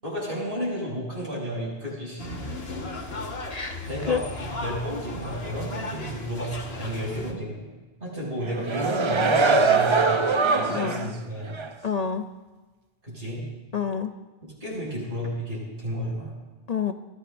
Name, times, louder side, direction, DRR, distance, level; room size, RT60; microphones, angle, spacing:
voice 1, 0.0-2.4 2.9-3.1 3.9-7.6 8.0-10.3 10.5-11.6 13.0-13.5 14.4-16.4, equal, 75° right, -5 dB, 6.5 m, -32 dB
sound 1, 2.2-7.3, left 2 dB, 75° left, 1.7 m, -36 dB
voice 2, 3.5-4.2 10.8-11.1 11.8-12.3 13.7-14.1 16.7-16.9, left 6 dB, 45° left, 7 dB, 0.6 m, -28 dB
sound 2, 8.4-11.1 11.6-11.7, right 4 dB, 35° right, 0.6 m, -22 dB
23.0 x 15.5 x 2.6 m, 1.2 s
omnidirectional pair, 1.0 m